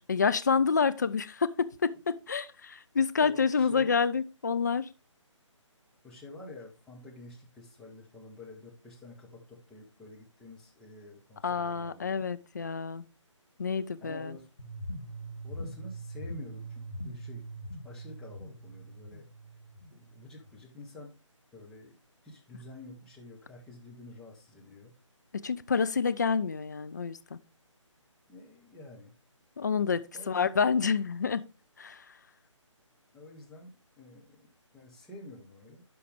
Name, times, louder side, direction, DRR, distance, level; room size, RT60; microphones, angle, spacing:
voice 1, 0.0-4.9 11.4-13.0 13.6-14.4 25.3-27.4 29.6-31.4 31.8-32.0, left 5 dB, 35° left, 0.4 m, -28 dB
voice 2, 3.2-3.9 6.0-12.1 14.0-14.5 15.4-17.5 17.8-19.2 19.9-21.1 21.5-21.9 22.2-24.9 28.3-29.1 30.1-30.5 33.1-35.8, left 2 dB, 5° left, 1.0 m, -49 dB
sound 1, 14.6-20.6, right 1 dB, 80° left, 2.3 m, -42 dB
11.0 x 4.9 x 3.4 m
figure-of-eight pair, 150°, 16 cm